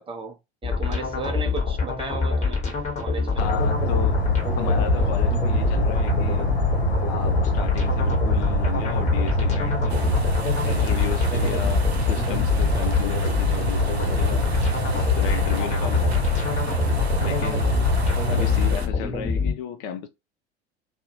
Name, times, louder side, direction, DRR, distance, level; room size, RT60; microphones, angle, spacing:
voice 1, 0.0-2.6 3.0-3.4, right 4 dB, 15° right, 0.4 m, -34 dB
sound 1, 0.6-19.5, left 5 dB, 20° left, 1.2 m, -25 dB
sound 2, 3.4-18.7, equal, 75° left, 0.8 m, -25 dB
voice 2, 3.4-4.2 4.6-6.5 7.1-10.1 10.6-14.5 14.9-16.1 17.2-17.8 18.3-20.1, left 8 dB, 45° left, 0.5 m, -34 dB
sound 3, 9.9-18.9, right 4 dB, 80° right, 0.6 m, -36 dB
2.5 x 2.0 x 2.8 m
figure-of-eight pair, 70°, 31 cm